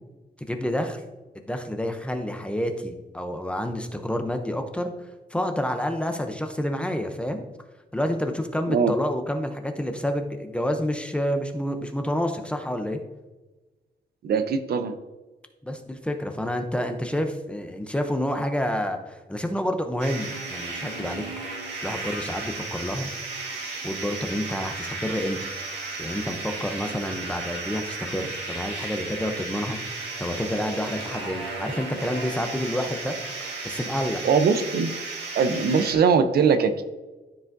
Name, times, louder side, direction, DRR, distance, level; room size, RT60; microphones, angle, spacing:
voice 1, 0.5-1.0 1.3-4.9 5.3-7.4 7.9-13.0 15.6-21.2 21.8-23.1 23.8-25.4 26.0-33.2 33.6-34.2, equal, 5° left, 5 dB, 0.6 m, -29 dB
voice 2, 14.2-14.9 34.2-34.9 35.3-36.8, right 5 dB, 65° right, 9 dB, 0.6 m, -21 dB
sound 1, 20.0-35.9, right 3 dB, 90° right, 2.0 m, -34 dB
13.0 x 5.0 x 2.6 m, 1.2 s
wide cardioid pair, 165°, 17 cm